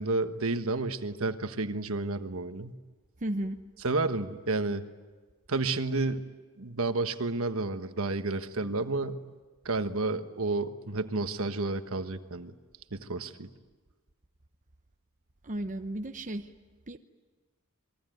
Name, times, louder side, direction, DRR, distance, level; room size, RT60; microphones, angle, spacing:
voice 1, 0.0-2.7 3.8-4.9 5.5-6.3 6.6-9.2 9.6-12.5 12.9-13.5, right 3 dB, 70° right, 9 dB, 1.3 m, -31 dB
voice 2, 3.2-3.6 15.4-16.5 16.9-17.0, right 1 dB, 35° right, 6 dB, 0.9 m, -34 dB
28.0 x 22.0 x 9.2 m, 1.3 s
head